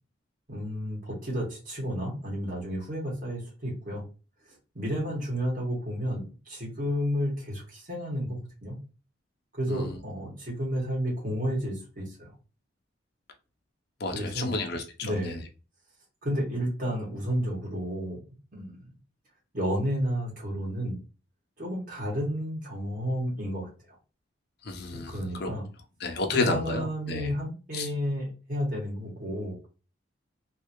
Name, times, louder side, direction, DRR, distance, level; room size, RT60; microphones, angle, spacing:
voice 1, 0.5-4.1 4.7-8.8 9.5-12.3 14.1-14.6 15.0-15.4 16.2-18.2 18.5-18.9 19.5-21.0 21.6-23.7 24.9-25.7 26.3-29.7, equal, 45° right, -3 dB, 1.8 m, -31 dB
voice 2, 14.0-15.3 24.6-25.1 25.4-25.5 26.0-27.3 27.7-27.9, left 3 dB, 55° left, 4 dB, 0.7 m, -31 dB
3.3 x 2.7 x 3.0 m, 0.33 s
head